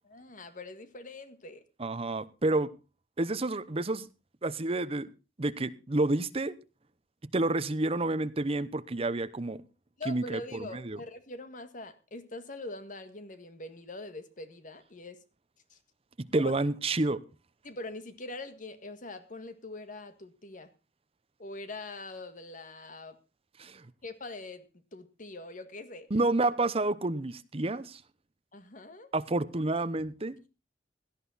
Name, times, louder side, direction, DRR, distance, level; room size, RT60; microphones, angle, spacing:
voice 1, 0.1-1.6 10.0-15.2 15.7-15.8 16.3-16.5 17.6-20.7 21.4-23.2 24.0-24.6 24.9-26.1 28.5-29.1, left 2 dB, 50° left, 1.8 m, -43 dB
voice 2, 1.8-2.7 3.2-4.1 4.4-5.1 5.4-6.6 7.3-9.6 10.1-11.0 16.2-17.2 23.6-23.9 26.1-28.0 29.1-30.5, right 2 dB, 35° right, 0.8 m, -29 dB
17.0 x 11.5 x 4.1 m
head